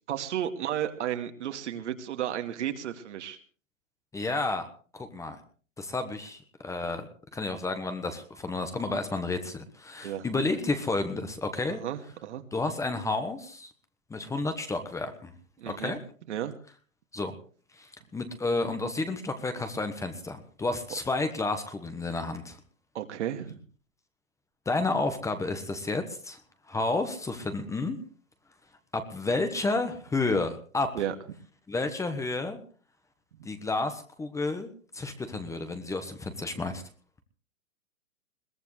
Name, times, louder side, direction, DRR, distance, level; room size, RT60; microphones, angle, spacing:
voice 1, 0.1-3.4 10.0-10.3 11.7-12.4 15.6-16.0 16.3-16.5 22.9-23.6 30.9-31.1, right 10 dB, 60° right, 7 dB, 2.3 m, -33 dB
voice 2, 4.1-4.7 4.9-5.4 5.8-7.1 7.3-11.8 12.5-13.7 14.1-15.3 15.7-16.0 17.1-17.3 17.8-22.6 24.6-26.4 26.7-28.0 28.9-30.9 31.7-32.6 33.4-36.8, left 3 dB, 10° left, 8 dB, 1.2 m, -31 dB
22.0 x 18.0 x 3.3 m, 0.40 s
hypercardioid pair, 130°, 39 cm